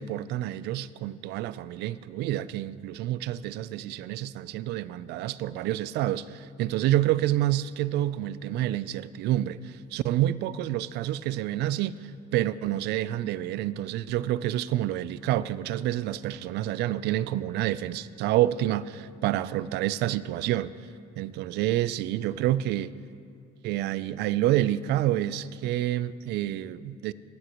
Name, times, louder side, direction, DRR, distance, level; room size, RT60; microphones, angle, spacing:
voice 1, 0.0-20.7 21.2-22.9 23.6-27.1, right 13 dB, 80° right, 0.4 m, -28 dB
18.0 x 12.5 x 3.0 m
cardioid pair, 110°, 17 cm